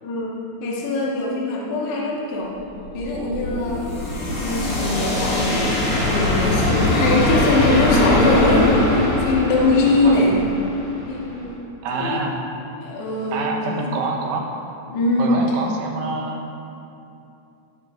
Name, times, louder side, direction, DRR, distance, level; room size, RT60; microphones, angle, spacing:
voice 1, 0.0-2.6 2.9-3.8 4.4-10.4 11.1-11.6 11.9-12.2 12.8-13.5 13.8-14.0 14.9-15.4, left 2 dB, 60° left, -5 dB, 3.2 m, -22 dB
sound 1, 2.6-11.5, left 1 dB, 45° left, 2.9 m, -22 dB
voice 2, 11.8-12.4 13.3-14.5 15.2-16.4, right 3 dB, 75° right, 0 dB, 3.3 m, -26 dB
18.5 x 12.5 x 2.6 m, 2.7 s
omnidirectional pair, 5.9 m